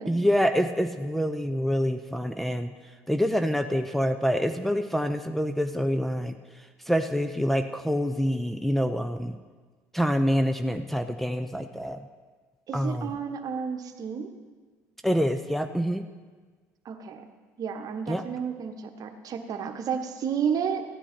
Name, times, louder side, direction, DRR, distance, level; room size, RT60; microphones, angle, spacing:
voice 1, 0.1-2.7 3.1-9.4 9.9-12.0 12.7-13.1 15.0-16.0 18.1-18.2, equal, ahead, 6 dB, 0.6 m, -26 dB
voice 2, 12.7-14.3 16.8-17.2 17.6-20.8, right 7 dB, 50° right, 7 dB, 1.2 m, -31 dB
14.0 x 9.9 x 4.4 m, 1.5 s
hypercardioid pair, 60°, 8 cm